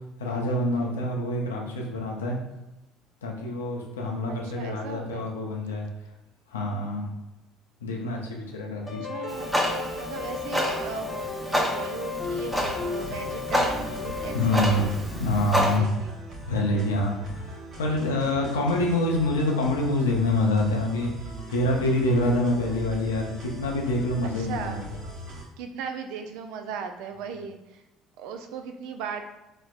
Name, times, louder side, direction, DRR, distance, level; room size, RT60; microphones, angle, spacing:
voice 1, 0.2-2.4 3.2-5.9 6.5-7.1 7.8-9.0 14.3-15.9 16.5-21.1 21.5-24.8, left 1 dB, 85° left, 0 dB, 0.5 m, -26 dB
voice 2, 4.3-5.3 8.9-15.1 15.5-16.1 24.2-24.8 25.6-27.6 28.2-29.2, right 6 dB, 70° right, 6 dB, 0.3 m, -37 dB
sound 1, 8.9-14.8, left 5 dB, 30° left, 0.8 m, -34 dB
Clock, 9.3-15.8, equal, 10° right, 0.7 m, -29 dB
sound 2, 12.2-25.4, right 1 dB, 55° right, 0.9 m, -40 dB
4.2 x 2.1 x 2.4 m, 0.99 s
hypercardioid pair, 60°, 0 cm